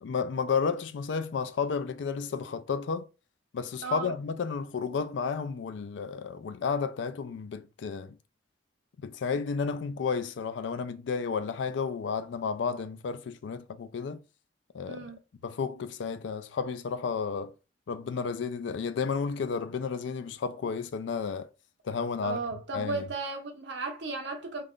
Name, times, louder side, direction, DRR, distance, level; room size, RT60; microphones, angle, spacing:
voice 1, 0.0-3.1 3.5-8.2 9.0-14.2 14.7-15.1 15.4-17.5 17.9-21.5 21.8-23.1, left 5 dB, 85° left, 0.4 m, -32 dB
voice 2, 3.8-4.1 14.9-15.2 22.2-24.6, right 3 dB, 80° right, 0.8 m, -35 dB
2.5 x 2.4 x 3.5 m
head